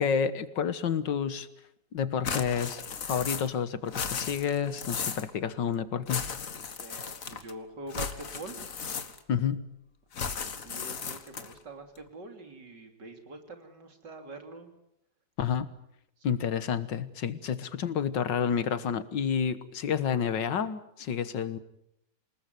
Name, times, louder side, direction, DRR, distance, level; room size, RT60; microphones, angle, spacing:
voice 1, 0.0-1.5 1.9-6.2 9.3-9.6 15.4-15.7 16.2-21.6, left 7 dB, 90° left, 14 dB, 2.0 m, -29 dB
sound 1, 2.2-3.6 3.8-5.3 6.1-7.5 7.9-9.4 10.1-11.6, left 6 dB, 50° left, 1.9 m, -35 dB
voice 2, 6.8-8.7 10.2-14.7 16.2-16.6, right 2 dB, 75° right, 6 dB, 3.7 m, -45 dB
27.5 x 19.5 x 9.2 m, 0.77 s
omnidirectional pair, 1.9 m